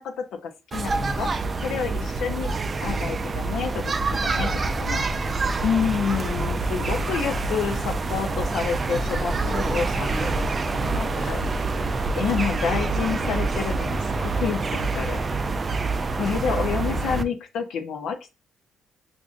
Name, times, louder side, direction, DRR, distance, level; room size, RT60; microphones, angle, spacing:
voice 1, 0.0-1.3 1.6-2.5 2.8-3.7 4.1-4.5 4.8-5.1 5.6-10.4 10.8-11.6 12.1-15.2 16.2-18.3, left 7 dB, 75° left, 0.5 m, -29 dB
sound 1, 0.7-17.2, right 3 dB, 35° right, 0.3 m, -26 dB
voice 2, 1.0-1.3 1.8-2.1 4.4-5.0 9.5-9.8 10.2-12.2, left 1 dB, 20° left, 0.7 m, -38 dB
sound 2, 8.9-10.9, left 2 dB, 55° left, 1.5 m, -45 dB
4.9 x 2.5 x 2.4 m
cardioid pair, 90°, 0 cm